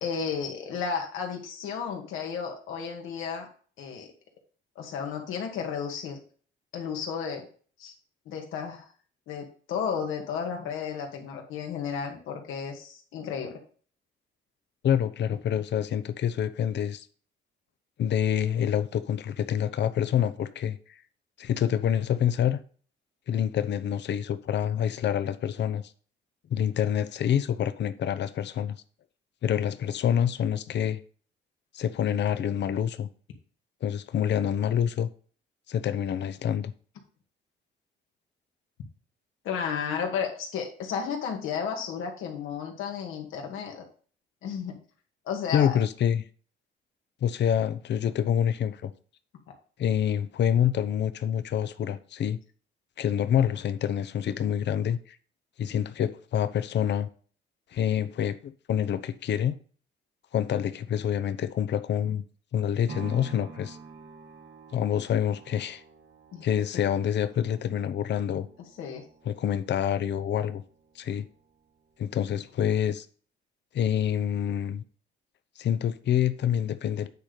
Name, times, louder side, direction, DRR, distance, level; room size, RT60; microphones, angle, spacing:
voice 1, 0.0-3.5 3.8-4.1 4.8-6.2 6.7-7.5 7.8-7.9 8.3-8.9 9.3-13.5 39.4-43.8 44.4-44.8 45.3-45.8 66.3-66.5 68.8-69.1, left 6 dB, 90° left, 2.1 m, -33 dB
voice 2, 14.8-17.1 18.0-20.8 21.4-22.6 23.3-25.8 26.5-28.8 29.4-31.0 31.7-33.1 33.8-35.1 35.7-36.7 45.5-46.2 47.2-48.9 49.8-52.4 53.0-55.0 55.6-57.1 57.7-59.6 60.3-62.2 62.5-63.8 64.7-65.8 66.4-68.5 69.3-70.6 71.0-71.3 72.0-73.1 73.7-74.8 75.6-77.1, left 9 dB, 60° left, 0.8 m, -27 dB
sound 1, 62.9-71.0 71.5-71.6, right 5 dB, 60° right, 1.5 m, -48 dB
9.4 x 4.3 x 5.0 m
cardioid pair, 90°, 20 cm